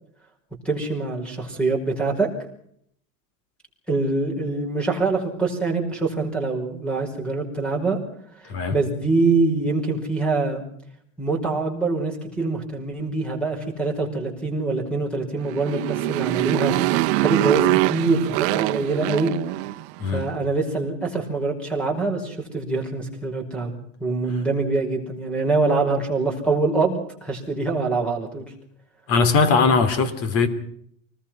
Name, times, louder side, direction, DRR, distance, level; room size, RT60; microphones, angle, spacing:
voice 1, 0.7-2.3 3.9-8.0 8.7-10.6 11.2-16.7 17.1-19.3 20.1-23.7 24.0-28.4, right 3 dB, 5° left, 5.3 m, -24 dB
Motorcycle, 15.4-20.0, right 20 dB, 65° right, 0.9 m, -23 dB
voice 2, 29.1-30.5, left 4 dB, 40° left, 3.0 m, -20 dB
25.5 x 20.0 x 5.9 m
cardioid pair, 170°, 35 cm